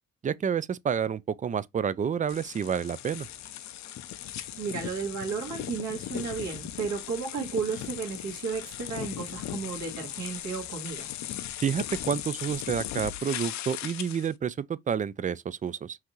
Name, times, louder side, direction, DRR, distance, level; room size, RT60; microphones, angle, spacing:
voice 1, 0.2-3.3 11.6-16.0, right 7 dB, 25° right, 0.3 m, -29 dB
sound 1, 2.3-14.3, left 12 dB, 65° left, 0.6 m, -38 dB
voice 2, 4.6-11.1, right 5 dB, 65° right, 1.7 m, -33 dB
5.7 x 2.7 x 3.0 m
cardioid pair, 90°, 30 cm